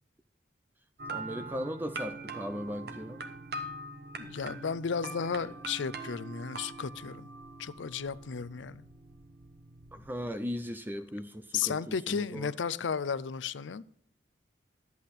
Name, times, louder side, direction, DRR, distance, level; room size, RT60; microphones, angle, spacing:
sound 1, 1.0-10.4, right 2 dB, 55° right, 1.1 m, -43 dB
voice 1, 1.1-3.2 9.9-12.5, equal, 10° right, 0.5 m, -38 dB
voice 2, 4.2-7.3 7.6-8.9 11.5-13.8, left 6 dB, 80° left, 0.5 m, -34 dB
11.5 x 8.3 x 4.1 m
head